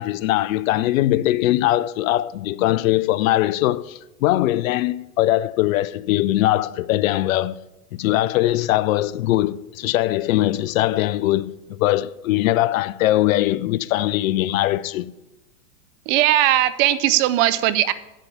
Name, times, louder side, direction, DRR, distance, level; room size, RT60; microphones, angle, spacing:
voice 1, 0.0-7.6 8.0-15.1, left 15 dB, 60° left, 0.6 m, -21 dB
voice 2, 16.1-17.9, right 14 dB, 35° right, 0.6 m, -18 dB
8.1 x 7.6 x 8.5 m
hypercardioid pair, 120°, 46 cm